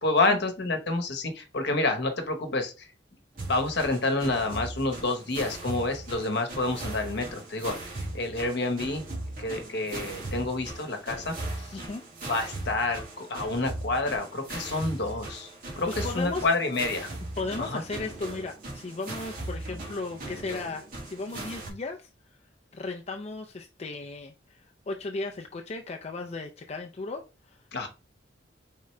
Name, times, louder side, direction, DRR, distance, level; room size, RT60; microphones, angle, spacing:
voice 1, 0.0-2.9 3.5-7.8 8.1-9.0 9.4-11.9 12.3-15.5 15.8-17.1 17.6-17.8 27.7-27.9, left 2 dB, 65° left, 1.0 m, -28 dB
sound 1, 3.4-21.7, right 2 dB, 50° right, 1.6 m, -39 dB
voice 2, 11.7-12.0 15.9-16.5 17.4-22.1 22.7-27.2 27.5-27.6, left 3 dB, 35° left, 0.4 m, -35 dB
4.4 x 3.7 x 3.1 m
head